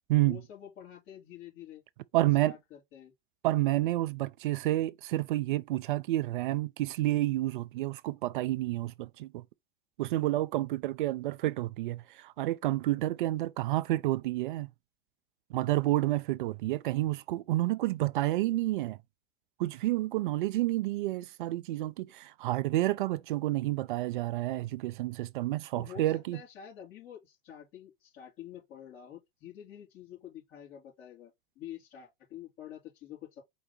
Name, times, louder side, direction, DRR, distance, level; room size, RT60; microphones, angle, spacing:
voice 1, 0.2-1.8 2.1-3.1 25.7-33.4, left 10 dB, 40° left, 3.1 m, -48 dB
voice 2, 2.1-2.5 3.4-9.4 10.0-14.7 15.5-19.0 19.6-26.4, right 16 dB, 55° right, 0.5 m, -29 dB
4.6 x 2.1 x 4.1 m
figure-of-eight pair, 85°, 30 cm